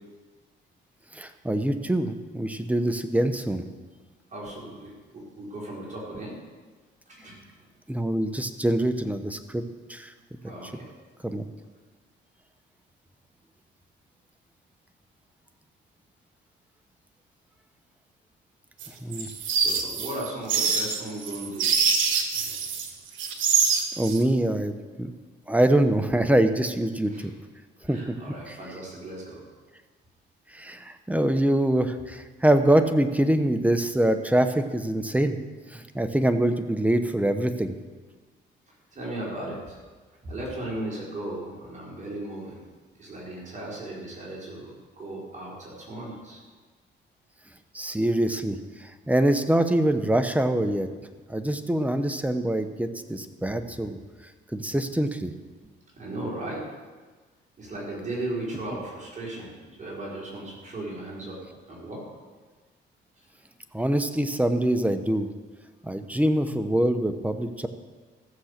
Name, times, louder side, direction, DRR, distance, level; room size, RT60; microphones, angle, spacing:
voice 1, 1.1-3.6 7.9-9.6 9.9-10.1 11.2-11.4 19.0-19.3 24.0-25.1 25.5-27.3 27.8-28.2 28.5-28.6 30.5-35.4 35.7-37.7 47.7-50.9 51.3-54.0 54.5-55.3 63.7-65.3 65.8-67.7, right 1 dB, 5° right, 8 dB, 1.0 m, -24 dB
voice 2, 4.3-6.4 7.1-7.4 10.4-10.9 19.6-21.8 27.1-27.3 27.8-29.4 38.7-39.8 40.2-42.7 43.0-46.4 56.0-56.7 57.6-59.5 59.8-62.1, right 1 dB, 40° right, -4 dB, 4.8 m, -36 dB
sound 1, 18.8-22.9 23.2-24.2, right 6 dB, 75° right, 1.4 m, -25 dB
14.5 x 7.2 x 6.7 m, 1.4 s
cardioid pair, 90°, 20 cm